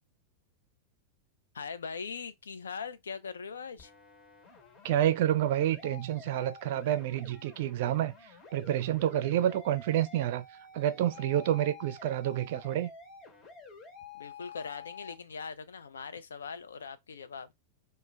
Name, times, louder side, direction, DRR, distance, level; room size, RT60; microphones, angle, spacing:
voice 1, 1.5-3.9 14.1-17.5, left 5 dB, 70° left, 0.3 m, -41 dB
sound 1, 3.8-15.1, left 4 dB, 30° left, 0.9 m, -50 dB
voice 2, 4.8-10.5 10.7-12.9, right 12 dB, 50° right, 0.4 m, -29 dB
2.1 x 2.1 x 3.2 m
figure-of-eight pair, 90°, 0 cm